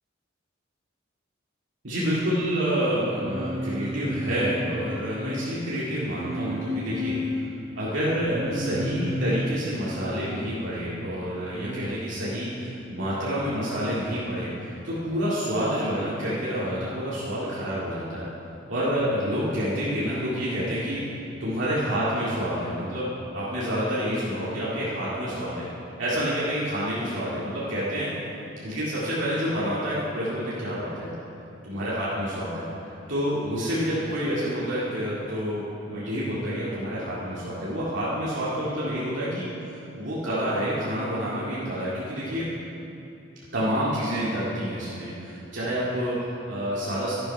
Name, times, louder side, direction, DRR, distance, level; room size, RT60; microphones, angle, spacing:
voice 1, 1.8-7.2 7.8-18.3 18.7-21.0 21.4-25.7 26.0-28.1 28.6-31.2 31.6-32.7 33.1-35.6 35.9-39.5 40.0-42.5 43.5-47.1, equal, 75° right, -9 dB, 2.2 m, -28 dB
Singing, 3.1-5.5 6.2-7.3 8.2-9.6 11.5-11.8, left 1 dB, 35° right, 1.1 m, -32 dB
11.0 x 11.0 x 4.7 m, 2.9 s
head